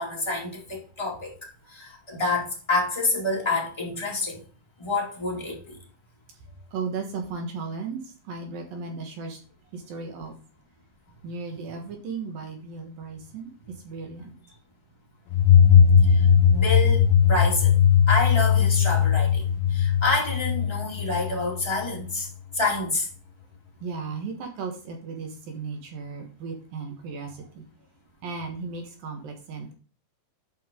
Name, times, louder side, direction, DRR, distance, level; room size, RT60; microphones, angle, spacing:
voice 1, 0.0-1.3 1.7-4.4 4.8-5.8 16.0-16.3 16.5-17.8 18.1-19.4 19.7-22.3 22.5-23.1, left 2 dB, 10° left, -3 dB, 1.3 m, -28 dB
voice 2, 6.7-8.0 8.3-9.4 9.7-10.3 11.2-13.5 13.8-14.3 23.8-27.6 28.2-29.7, right 4 dB, 65° right, 3 dB, 2.8 m, -35 dB
sound 1, 15.3-21.9, left 8 dB, 80° left, 2.0 m, -19 dB
9.3 x 5.5 x 3.7 m, 0.37 s
omnidirectional pair, 4.9 m